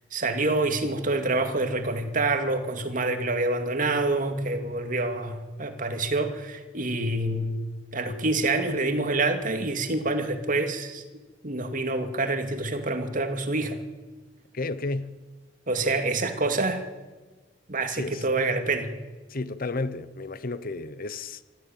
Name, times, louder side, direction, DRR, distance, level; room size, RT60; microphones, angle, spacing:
voice 1, 0.1-7.6 7.9-11.0 11.4-13.8 15.7-16.8 17.7-18.9, right 2 dB, 45° right, 2.4 m, -27 dB
voice 2, 14.5-15.1 17.9-18.2 19.3-21.4, left 3 dB, 50° left, 0.9 m, -32 dB
25.5 x 13.5 x 9.1 m
head